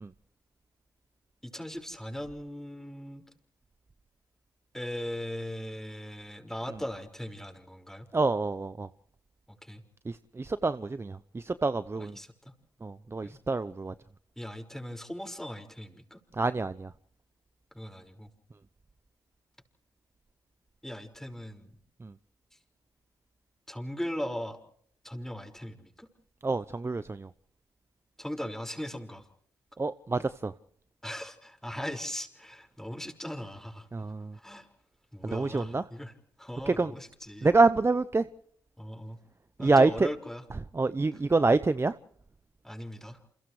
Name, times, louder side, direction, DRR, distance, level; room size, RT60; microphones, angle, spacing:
voice 1, 1.4-3.2 4.7-8.1 9.6-9.8 11.9-12.5 13.2-13.4 14.4-16.2 17.7-18.3 20.8-21.8 23.7-24.6 25.0-26.1 28.2-29.2 31.0-33.9 34.3-34.7 35.1-37.5 38.8-39.2 39.6-40.4 41.1-41.2 42.6-43.2, equal, 5° left, 5.6 m, -39 dB
voice 2, 8.1-8.9 10.1-12.2 12.8-13.9 16.4-16.9 26.4-27.3 29.8-30.5 33.9-34.3 35.3-35.8 36.7-36.9 37.4-38.2 39.6-40.1 40.8-41.9, right 3 dB, 25° right, 0.9 m, -26 dB
29.0 x 28.5 x 3.3 m
hypercardioid pair, 45°, 9 cm